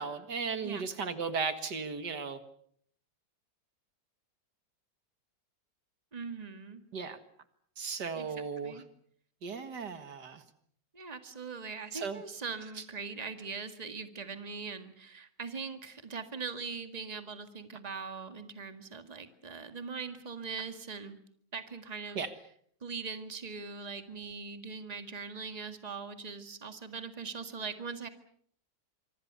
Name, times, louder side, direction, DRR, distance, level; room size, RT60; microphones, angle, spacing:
voice 1, 0.0-2.4 6.9-7.2 7.8-8.8 9.4-10.4 11.9-12.2 22.2-22.3, right 5 dB, 75° right, 10 dB, 2.3 m, -36 dB
voice 2, 6.1-6.8 8.2-8.3 8.6-8.8 10.9-21.2 21.5-22.2 22.8-28.1, right 5 dB, 20° right, 8 dB, 1.9 m, -41 dB
25.5 x 24.5 x 6.8 m, 0.64 s
omnidirectional pair, 1.9 m